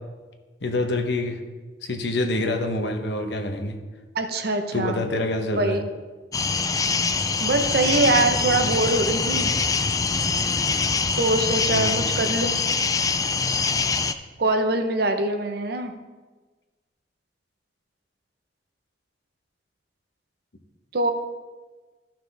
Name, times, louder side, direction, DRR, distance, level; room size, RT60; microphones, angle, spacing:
voice 1, 0.6-1.4 1.8-3.8 4.7-5.8 11.7-12.1, left 2 dB, 75° left, 5 dB, 1.0 m, -26 dB
voice 2, 4.1-5.0 5.5-5.8 7.4-9.5 11.2-12.6 14.4-15.9 20.9-21.1, right 2 dB, 65° right, 6 dB, 0.8 m, -23 dB
sound 1, 6.3-14.1, left 4 dB, 20° left, 0.3 m, -24 dB
13.5 x 5.9 x 3.5 m, 1.3 s
head